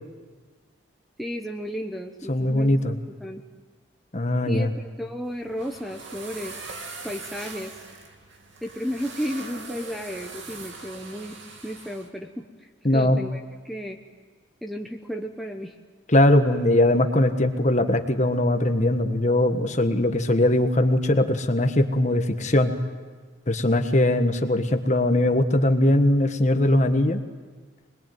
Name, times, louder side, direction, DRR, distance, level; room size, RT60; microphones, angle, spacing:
voice 1, 1.2-2.7 3.2-3.4 4.5-6.6 7.0-7.7 8.6-11.4 11.6-13.4 13.6-14.0 14.6-15.7, equal, ahead, 1 dB, 1.0 m, -33 dB
voice 2, 2.3-3.0 4.1-4.7 12.8-13.2 16.1-22.7 23.5-27.2, left 1 dB, 35° left, 6 dB, 1.4 m, -20 dB
sound 1, 5.2-12.1, right 4 dB, 75° right, 2.7 m, -41 dB
25.5 x 20.5 x 9.3 m, 1.4 s
head